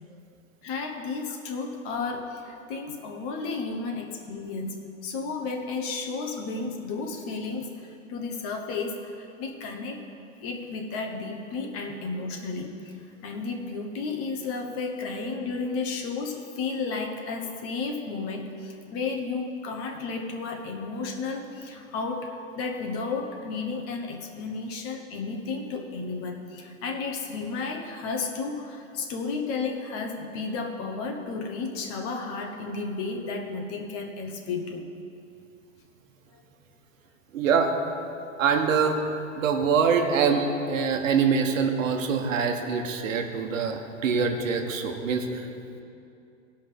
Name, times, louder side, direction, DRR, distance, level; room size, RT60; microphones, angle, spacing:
voice 1, 0.6-10.0 10.4-12.9 13.2-34.9 36.3-36.4, left 4 dB, 35° left, 3 dB, 1.2 m, -33 dB
voice 2, 37.3-37.7 38.4-39.0 39.4-45.5, right 5 dB, 75° right, 4 dB, 1.3 m, -24 dB
16.5 x 5.6 x 5.1 m, 2.6 s
hypercardioid pair, 135°, 40 cm